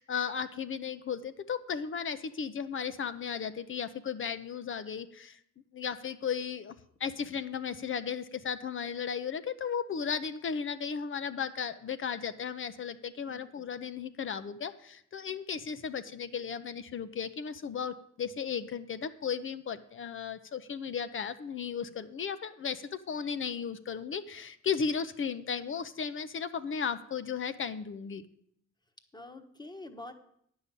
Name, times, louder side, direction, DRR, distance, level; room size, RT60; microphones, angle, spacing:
voice 1, 0.0-5.4 5.7-6.7 7.0-28.2, left 6 dB, 40° left, 12 dB, 0.7 m, -35 dB
voice 2, 13.3-13.6 29.1-30.1, left 2 dB, 15° left, 7 dB, 1.2 m, -46 dB
9.7 x 5.5 x 8.2 m, 0.70 s
cardioid pair, 90°, 30 cm